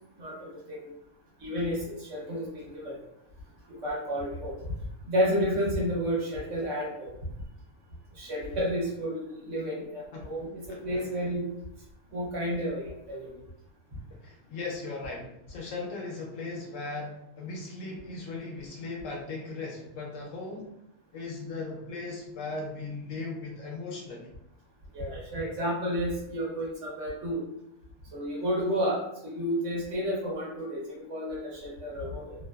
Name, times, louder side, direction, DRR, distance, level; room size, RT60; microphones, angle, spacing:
voice 1, 0.2-0.9 1.4-3.0 3.8-4.5 5.1-7.1 8.2-11.5 12.1-13.3 24.9-27.4 28.1-32.4, equal, 60° right, -4 dB, 1.2 m, -31 dB
voice 2, 10.7-11.2 14.2-20.7 21.1-24.3, left 3 dB, 70° left, -1 dB, 0.9 m, -38 dB
2.8 x 2.2 x 2.2 m, 0.81 s
omnidirectional pair, 1.5 m